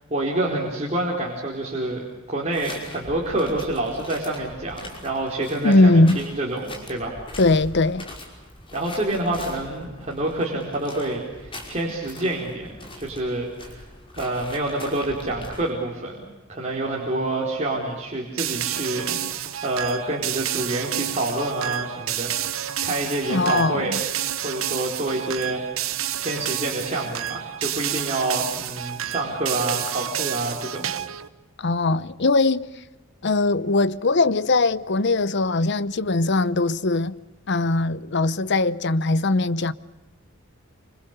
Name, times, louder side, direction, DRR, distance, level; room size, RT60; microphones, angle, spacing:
voice 1, 0.1-2.0 2.3-7.2 8.7-13.9 14.2-16.2 16.5-22.4 22.8-24.0 24.4-30.9, right 2 dB, 35° right, 4.5 m, -27 dB
sound 1, 2.5-15.7, left 1 dB, 25° left, 5.6 m, -42 dB
voice 2, 5.6-6.2 7.4-8.0 23.3-24.0 31.6-32.7 33.2-37.1 37.5-39.7, left 2 dB, 55° left, 0.8 m, -20 dB
sound 2, 18.4-31.3, right 11 dB, 80° right, 1.0 m, -30 dB
28.0 x 26.0 x 6.8 m
head